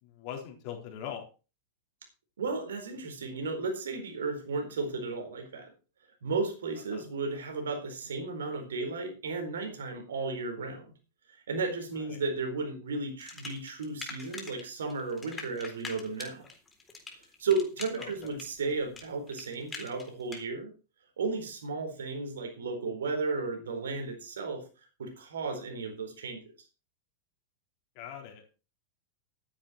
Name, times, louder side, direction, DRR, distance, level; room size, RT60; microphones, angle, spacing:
voice 1, 0.0-1.3 6.9-7.0 11.9-12.2 18.0-18.4 28.0-28.6, left 9 dB, 45° left, 3 dB, 4.2 m, -42 dB
voice 2, 2.4-5.7 6.2-10.9 11.5-16.4 17.4-20.7 21.2-24.6 25.0-26.5, right 3 dB, 65° right, 4 dB, 4.3 m, -34 dB
sound 1, 13.2-14.6 14.9-20.4, left 4 dB, 15° left, 3.9 m, -43 dB
13.0 x 10.0 x 4.4 m, 0.33 s
figure-of-eight pair, 90°, 0 cm